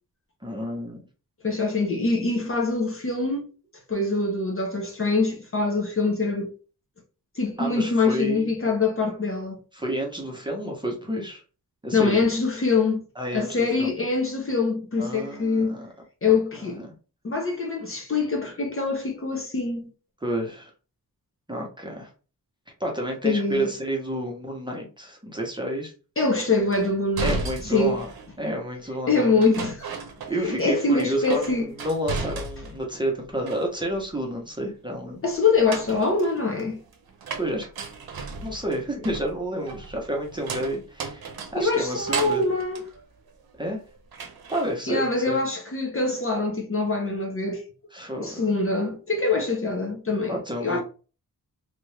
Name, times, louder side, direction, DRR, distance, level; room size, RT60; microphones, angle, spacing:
voice 1, 0.4-1.0 7.6-8.5 9.7-11.4 11.8-12.2 13.2-13.9 15.0-15.9 16.3-16.4 16.6-16.9 20.2-20.7 21.5-22.1 22.8-25.9 27.2-28.1 28.4-29.4 30.3-35.2 37.4-37.7 38.4-41.2 41.5-42.4 43.6-43.8 44.5-45.4 47.9-48.5 50.3-50.8, right 1 dB, 10° right, 0.9 m, -30 dB
voice 2, 1.4-3.5 3.9-6.5 7.4-9.6 11.9-13.0 13.3-15.8 16.2-16.8 17.2-19.9 23.2-23.7 26.2-28.0 29.1-29.9 30.4-31.7 35.2-36.8 41.6-42.8 44.9-47.6 48.2-50.8, left 3 dB, 35° left, 0.8 m, -24 dB
sound 1, 26.7-28.4 29.4-30.7 31.0-32.9 33.2-34.0 35.4-43.7 44.1-44.7, right 4 dB, 70° right, 0.7 m, -35 dB
2.8 x 2.5 x 3.2 m
wide cardioid pair, 125°, 37 cm